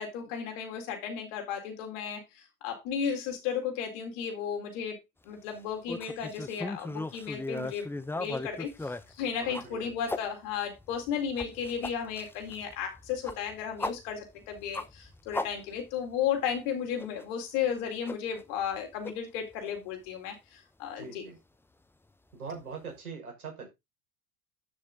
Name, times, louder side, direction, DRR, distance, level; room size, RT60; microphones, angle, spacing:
voice 1, 0.0-5.0 5.3-7.9 8.1-21.2, left 8 dB, 55° left, 4.2 m, -34 dB
sound 1, 5.9-10.2 10.7-16.1 16.4-16.5 17.0-17.2 18.0-18.8 19.0-19.1 19.6-19.7 21.0-21.1, left 2 dB, 5° left, 0.9 m, -37 dB
voice 2, 9.4-9.9 21.0-21.4 22.3-23.7, right 5 dB, 75° right, 5.8 m, -42 dB
12.5 x 6.7 x 3.9 m
figure-of-eight pair, 75°, 44 cm